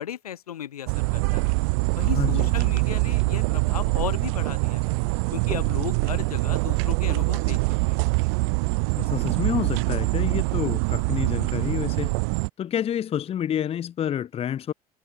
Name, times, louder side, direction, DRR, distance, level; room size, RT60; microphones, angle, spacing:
voice 1, 0.0-1.5 1.9-4.9 5.3-7.6 7.9-8.1, left 10 dB, 75° left, 1.2 m, -35 dB
sound 1, 0.9-12.5, right 34 dB, 55° right, 0.7 m, -24 dB
voice 2, 2.0-2.5 9.0-12.1 12.6-14.7, left 10 dB, 30° left, 0.8 m, -29 dB
figure-of-eight pair, 65°, 19 cm